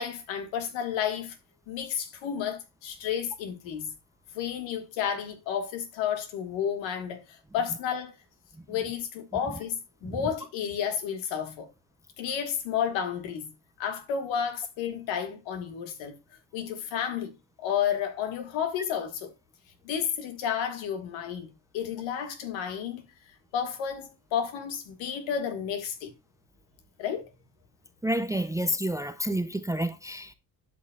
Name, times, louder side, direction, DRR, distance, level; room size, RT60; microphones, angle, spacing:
voice 1, 0.0-1.4 1.7-3.9 4.3-8.2 8.7-11.7 12.2-13.5 13.8-16.2 16.5-17.3 17.6-19.3 19.8-23.0 23.5-26.1 27.0-27.3, left 8 dB, 80° left, 1.7 m, -31 dB
voice 2, 28.0-30.3, right 1 dB, 10° right, 0.4 m, -29 dB
11.5 x 5.3 x 2.3 m
supercardioid pair, 80°, 45 cm